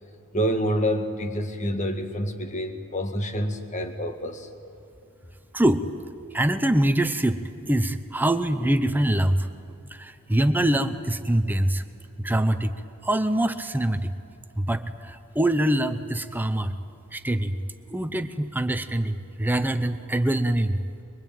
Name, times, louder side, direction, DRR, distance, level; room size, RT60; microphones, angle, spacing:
voice 1, 0.3-4.5, equal, 35° left, 6 dB, 1.8 m, -27 dB
voice 2, 5.5-5.9 6.3-7.4 7.7-9.5 9.9-11.8 12.2-12.7 13.0-14.1 14.6-16.7 17.1-17.6 17.9-20.8, right 1 dB, 10° right, 9 dB, 0.8 m, -24 dB
24.0 x 23.0 x 9.0 m, 2.7 s
head